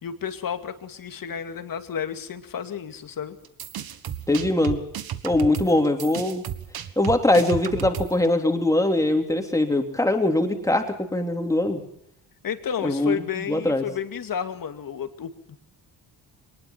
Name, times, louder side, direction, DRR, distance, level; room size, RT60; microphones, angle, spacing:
voice 1, 0.0-3.4 12.4-15.6, left 8 dB, 55° left, 8 dB, 2.5 m, -32 dB
sound 1, 3.4-8.3, right 9 dB, 65° right, 1.7 m, -33 dB
voice 2, 4.3-4.8 5.2-6.4 7.0-11.8 12.8-13.9, left 1 dB, 10° left, 4 dB, 3.4 m, -22 dB
23.5 x 20.5 x 5.8 m, 0.73 s
cardioid pair, 130°, 40 cm